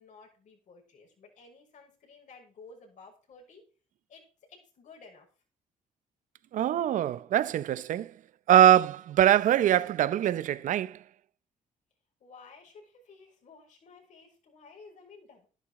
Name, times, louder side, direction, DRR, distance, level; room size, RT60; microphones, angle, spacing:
voice 1, 0.0-3.6 4.1-5.3 12.2-15.5, left 4 dB, 65° left, 6.0 m, -54 dB
voice 2, 6.5-8.1 8.5-11.0, right 11 dB, 70° right, 0.7 m, -23 dB
12.0 x 11.5 x 3.8 m
cardioid pair, 75°, 14 cm